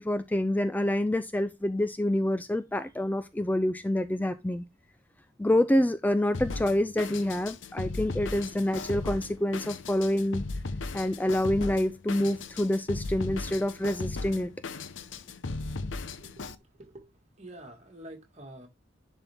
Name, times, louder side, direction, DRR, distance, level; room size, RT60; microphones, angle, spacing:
voice 1, 0.0-4.6 5.4-10.4 10.9-14.5, left 1 dB, 10° left, 0.3 m, -27 dB
Drum kit, 6.3-16.6, left 3 dB, 75° left, 0.8 m, -37 dB
voice 2, 16.7-17.1 17.4-18.7, right 1 dB, 35° right, 1.9 m, -47 dB
10.5 x 4.2 x 3.5 m
head